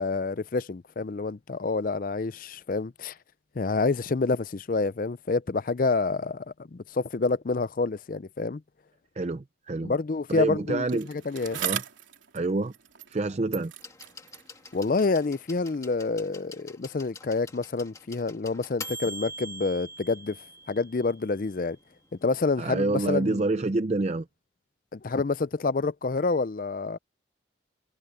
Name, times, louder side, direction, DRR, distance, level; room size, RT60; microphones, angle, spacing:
voice 1, 0.0-3.1 3.6-8.6 9.8-11.6 14.7-20.4 20.7-21.8 22.2-23.5 24.9-27.0, left 3 dB, 45° left, 0.5 m, -28 dB
voice 2, 9.2-9.9 10.3-11.1 11.6-11.8 12.3-12.7 13.1-13.7 22.6-24.3, right 2 dB, 35° right, 0.5 m, -27 dB
Bicycle, 10.9-13.3 13.5-15.9 16.7-16.8, right 10 dB, 80° right, 3.5 m, -39 dB
sound 1, 13.8-21.6 22.7-22.8, equal, 15° left, 1.6 m, -44 dB
head